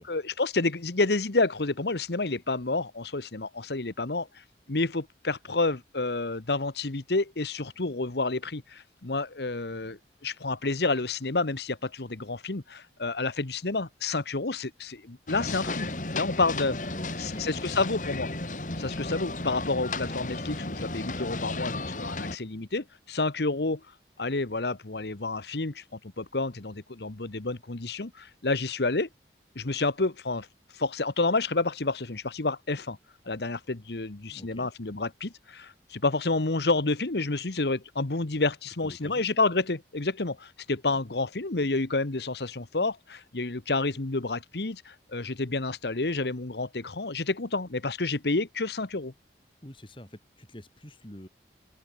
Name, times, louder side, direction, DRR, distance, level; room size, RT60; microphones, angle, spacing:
voice 1, 0.0-4.3 4.7-16.7 17.2-18.3 18.8-23.8 24.2-29.1 29.5-30.5 30.7-33.0 33.3-49.1, left 3 dB, 70° left, 1.3 m, -29 dB
sound 1, 15.3-22.4, left 2 dB, 45° left, 2.6 m, -34 dB
voice 2, 16.7-17.9 34.3-34.7 38.8-39.2 40.9-41.0 49.6-51.3, equal, 30° left, 4.2 m, -47 dB
open air
head